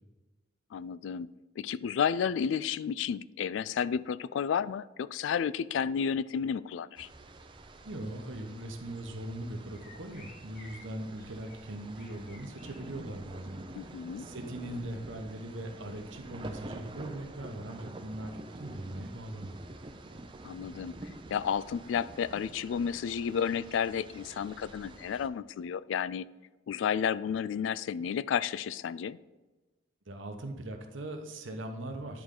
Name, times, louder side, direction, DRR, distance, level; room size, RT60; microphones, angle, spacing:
voice 1, 0.7-7.1 13.7-14.3 20.4-26.3 26.7-29.2, left 7 dB, 70° left, 18 dB, 0.3 m, -32 dB
sound 1, 7.0-25.3, right 2 dB, 25° right, 0.6 m, -48 dB
voice 2, 7.8-19.6 30.1-32.2, right 1 dB, 75° right, 4 dB, 1.1 m, -40 dB
sound 2, 9.0-9.1 9.7-10.8 11.2-11.6 11.9-12.9 13.4-13.6, left 2 dB, 50° left, 2.0 m, -55 dB
10.5 x 4.8 x 3.8 m, 1.2 s
head